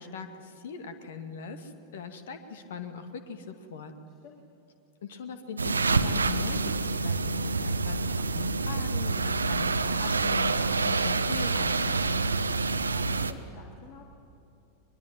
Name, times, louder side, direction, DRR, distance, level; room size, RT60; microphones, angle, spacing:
voice 1, 0.0-3.9 5.0-12.2, left 6 dB, 60° left, 8 dB, 2.3 m, -40 dB
voice 2, 4.1-4.4 12.5-14.0, left 5 dB, 40° left, 0 dB, 3.2 m, -50 dB
sound 1, 5.6-13.3, right 3 dB, 75° right, 0.9 m, -27 dB
23.0 x 22.5 x 9.3 m, 2.8 s
figure-of-eight pair, 90°, 0 cm